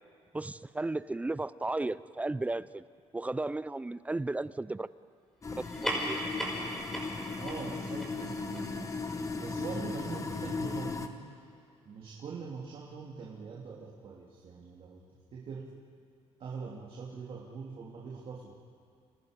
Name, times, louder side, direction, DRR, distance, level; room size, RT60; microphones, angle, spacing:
voice 1, 0.3-2.8 3.1-4.9 5.5-6.2, right 2 dB, 10° right, 16 dB, 0.5 m, -34 dB
sound 1, 5.4-11.1, left 4 dB, 25° left, 1.6 m, -37 dB
sound 2, 5.6-10.5, equal, 5° left, 6.0 m, -39 dB
voice 2, 7.4-8.9 9.4-11.2 11.8-15.7 16.4-18.6, right 5 dB, 55° right, -3 dB, 3.1 m, -43 dB
29.5 x 29.5 x 5.3 m, 2.4 s
cardioid pair, 115°, 11 cm